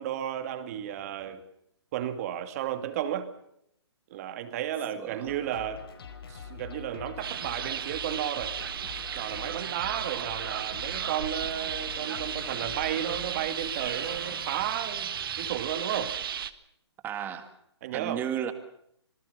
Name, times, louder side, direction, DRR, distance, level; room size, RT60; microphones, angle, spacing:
voice 1, 0.0-1.4 1.9-3.3 4.1-5.8 6.3-8.5 9.2-16.2 17.8-18.2, right 10 dB, 35° right, 9 dB, 2.4 m, -33 dB
voice 2, 5.0-5.3 17.0-17.5 17.9-18.5, right 9 dB, 15° right, 9 dB, 2.0 m, -33 dB
sound 1, 5.3-13.3, left 6 dB, 55° left, 5.1 m, -45 dB
sound 2, 7.2-16.5, right 8 dB, 55° right, 1.5 m, -35 dB
Motorcycle / Engine, 8.7-15.8, left 6 dB, 25° left, 3.9 m, -53 dB
26.5 x 19.5 x 6.9 m, 0.73 s
hypercardioid pair, 155°, 15 cm